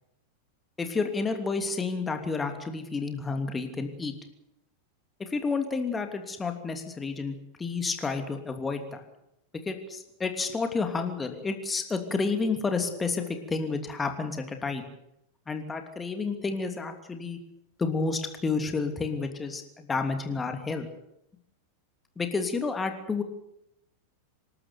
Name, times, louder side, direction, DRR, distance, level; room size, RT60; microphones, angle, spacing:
voice 1, 0.8-4.1 5.2-9.0 9.6-14.9 15.5-17.4 17.8-20.9 22.2-23.2, left 4 dB, 15° left, 6 dB, 2.9 m, -30 dB
27.0 x 13.0 x 9.5 m, 0.80 s
figure-of-eight pair, 90°, 0 cm